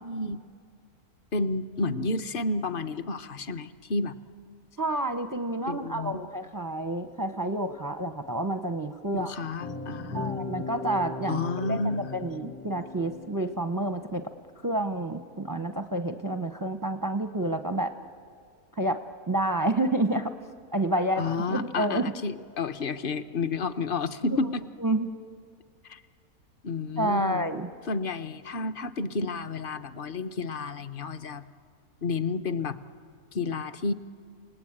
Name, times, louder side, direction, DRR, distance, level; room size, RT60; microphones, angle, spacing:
voice 1, 0.0-0.4 1.3-4.2 5.7-6.2 9.1-10.5 11.3-12.3 21.2-24.6 25.8-26.0 26.6-27.5 27.9-31.4 32.0-32.8 33.3-33.9, left 3 dB, 45° left, 12 dB, 0.8 m, -31 dB
voice 2, 4.8-9.3 10.1-11.8 12.1-14.2 14.6-17.9 18.8-20.3 20.7-22.0 24.8-25.1 27.0-27.7, right 1 dB, 25° right, 9 dB, 0.4 m, -29 dB
sound 1, 9.6-13.8, left 3 dB, 85° left, 2.1 m, -38 dB
29.0 x 19.0 x 8.7 m, 2.2 s
omnidirectional pair, 1.5 m